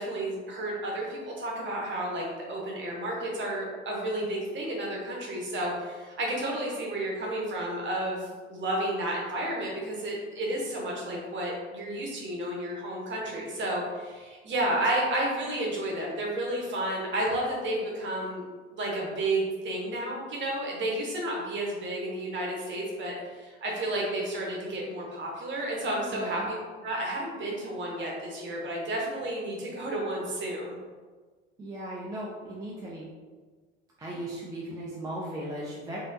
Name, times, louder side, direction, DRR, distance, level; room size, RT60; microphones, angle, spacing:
voice 1, 0.0-18.4 18.7-26.5 26.8-30.8, right 1 dB, 35° right, -2 dB, 1.0 m, -31 dB
voice 2, 26.1-26.5 31.6-33.1 34.0-36.0, right 1 dB, 10° right, -4 dB, 0.4 m, -37 dB
3.3 x 2.7 x 2.6 m, 1.4 s
figure-of-eight pair, 65°, 35 cm